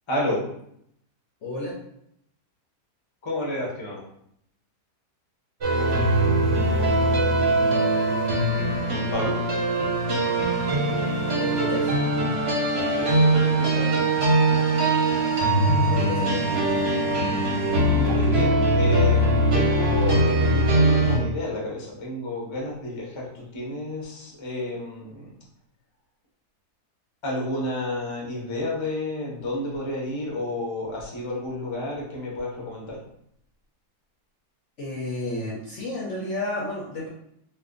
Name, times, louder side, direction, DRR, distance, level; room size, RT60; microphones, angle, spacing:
voice 1, 1.4-1.7 11.4-11.9 12.7-13.1 15.9-16.5 34.8-37.1, left 1 dB, 60° left, -5 dB, 0.8 m, -32 dB
voice 2, 3.2-4.0 8.9-9.4 13.0-13.9 17.8-25.3 27.2-33.0, left 1 dB, 30° left, -3 dB, 0.6 m, -30 dB
sound 1, 5.6-21.2, right 1 dB, 50° right, 0.9 m, -21 dB
2.6 x 2.5 x 3.7 m, 0.73 s
omnidirectional pair, 1.7 m